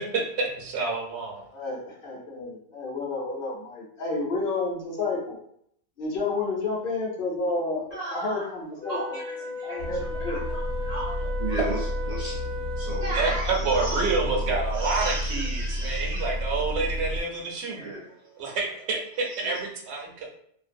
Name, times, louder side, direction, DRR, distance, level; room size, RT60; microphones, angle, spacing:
voice 1, 0.0-1.4 13.1-17.9 18.4-20.3, right 3 dB, 80° right, 0 dB, 0.9 m, -28 dB
voice 2, 1.5-5.4 6.0-9.2 9.6-10.4, left 3 dB, 60° left, -2 dB, 0.8 m, -30 dB
voice 3, 7.9-8.5 8.9-12.4 12.8-16.3 16.7-16.8 17.4-18.5 19.2-19.6, right 2 dB, 50° right, -4 dB, 0.6 m, -35 dB
Wind instrument woodwind instrument, 8.8-13.4, left 2 dB, 10° left, 0.5 m, -36 dB
sound 1, 9.8-17.2, equal, 85° left, 0.9 m, -31 dB
2.5 x 2.1 x 2.5 m, 0.68 s
omnidirectional pair, 1.1 m